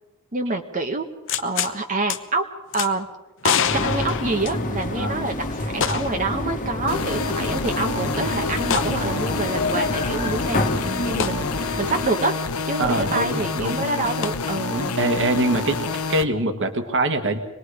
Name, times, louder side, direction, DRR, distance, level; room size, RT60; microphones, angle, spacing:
voice 1, 0.3-1.1 1.4-3.1 3.4-10.6 11.0-12.4 12.7-15.0, right 3 dB, 35° right, 4 dB, 1.1 m, -27 dB
sound 1, 1.3-1.7 2.1-2.2 2.7-2.9 3.4-4.9 5.8-6.3 6.6-6.7 8.7-9.0 11.2-11.4 14.2-14.3, left 8 dB, 60° left, 0.9 m, -25 dB
sound 2, 3.6-12.1, left 1 dB, 35° left, 1.5 m, -28 dB
voice 2, 4.9-5.3 12.8-13.9 14.7-15.8 16.1-17.4, right 1 dB, 60° right, 7 dB, 1.8 m, -23 dB
sound 3, 6.9-16.2, left 4 dB, 85° left, 1.0 m, -28 dB
25.0 x 20.5 x 5.0 m, 1.1 s
head